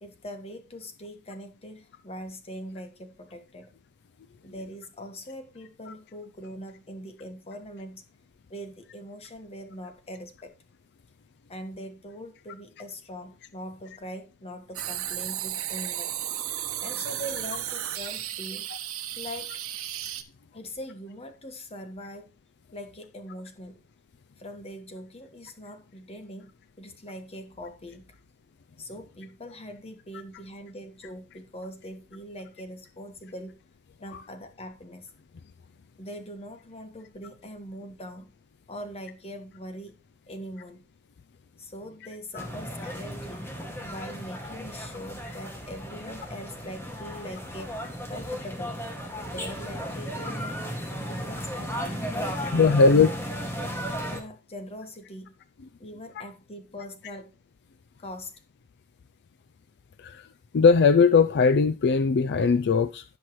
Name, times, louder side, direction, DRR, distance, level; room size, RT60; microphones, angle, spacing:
voice 1, 0.0-3.7 4.4-8.0 8.5-10.5 11.5-16.1 16.8-18.7 19.2-19.6 20.5-22.3 22.7-23.8 24.4-28.1 28.8-33.6 34.0-35.1 36.0-38.3 38.7-40.0 40.3-40.8 41.6-48.8 49.2-50.6 51.1-52.9 54.1-55.3 55.8-57.3 58.0-58.3, equal, 30° left, 1.4 m, -42 dB
sound 1, 14.7-20.2, right 11 dB, 70° right, 1.2 m, -34 dB
sound 2, 42.4-54.2, equal, 10° left, 2.0 m, -35 dB
voice 2, 52.5-53.1 60.0-60.2 60.5-63.0, left 5 dB, 55° left, 0.4 m, -19 dB
16.5 x 5.8 x 3.1 m
head